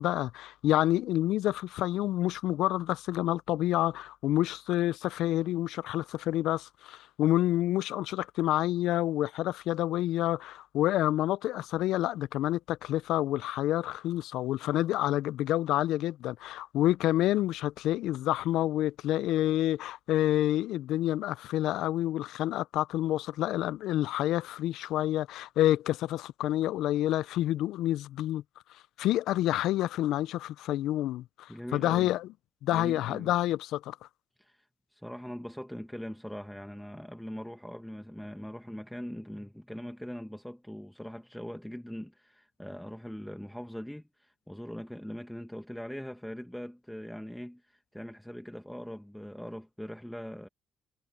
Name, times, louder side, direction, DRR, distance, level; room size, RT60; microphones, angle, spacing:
voice 1, 0.0-28.4 29.0-32.3 32.6-34.0, left 14 dB, 90° left, 0.3 m, -28 dB
voice 2, 31.5-32.1 32.7-33.3 34.4-34.7 34.9-50.5, equal, 5° left, 1.3 m, -41 dB
cardioid pair, 90°, 0 cm